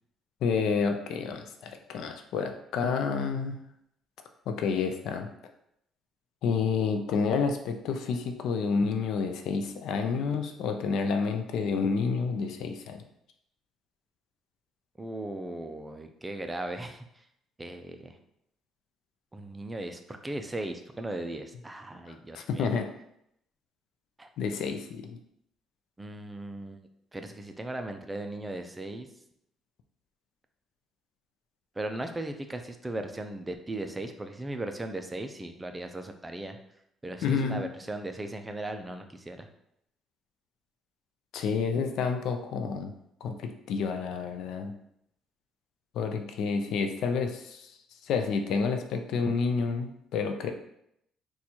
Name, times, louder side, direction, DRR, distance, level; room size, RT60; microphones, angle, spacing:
voice 1, 0.4-3.6 4.5-5.3 6.4-13.0 22.1-22.9 24.4-25.2 37.2-37.6 41.3-42.9 43.2-44.7 45.9-47.7 48.0-50.5, left 5 dB, 70° left, 6 dB, 0.4 m, -29 dB
voice 2, 15.0-17.0 17.6-18.2 19.3-22.7 24.2-24.3 26.0-26.8 27.1-29.1 31.8-36.6 37.0-39.5, right 1 dB, 10° right, 6 dB, 0.3 m, -37 dB
4.1 x 2.3 x 2.8 m, 0.76 s
cardioid pair, 130°, 0 cm